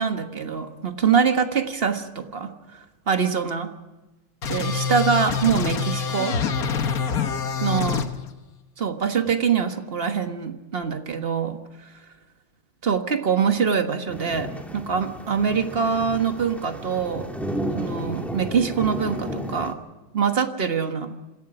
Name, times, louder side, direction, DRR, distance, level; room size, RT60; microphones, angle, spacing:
voice 1, 0.0-3.8 4.5-6.4 7.6-8.0 8.8-11.9 12.8-17.3 17.7-19.8 20.1-21.2, right 6 dB, 35° right, 7 dB, 1.3 m, -24 dB
sound 1, 4.4-8.1, left 6 dB, 50° left, 1.4 m, -25 dB
sound 2, 14.1-19.7, equal, ahead, 1.8 m, -33 dB
26.5 x 17.0 x 6.1 m, 1.1 s
omnidirectional pair, 2.2 m